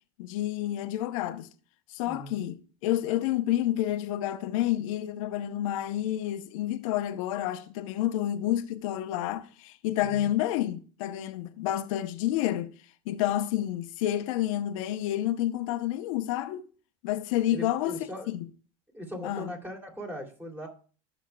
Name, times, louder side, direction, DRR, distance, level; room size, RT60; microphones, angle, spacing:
voice 1, 0.2-1.5 1.9-12.7 13.1-16.7 17.0-18.0 18.3-18.5 19.2-19.5, left 13 dB, 75° left, 0.9 m, -29 dB
voice 2, 2.0-2.5 10.0-10.3 17.5-18.3 18.9-20.7, equal, 10° right, 2.9 m, -39 dB
16.0 x 6.2 x 2.3 m
supercardioid pair, 105°, 17 cm